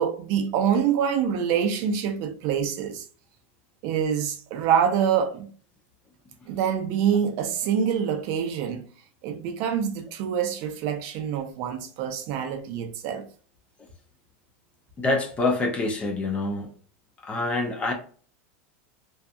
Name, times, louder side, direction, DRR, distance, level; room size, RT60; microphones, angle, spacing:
voice 1, 0.0-3.1 3.8-5.5 6.5-8.8 9.2-13.2, right 8 dB, 45° right, 0.4 m, -25 dB
voice 2, 15.0-16.7 17.2-17.9, left 2 dB, 15° left, 0.5 m, -26 dB
2.6 x 2.3 x 2.3 m
supercardioid pair, 165°, 7 cm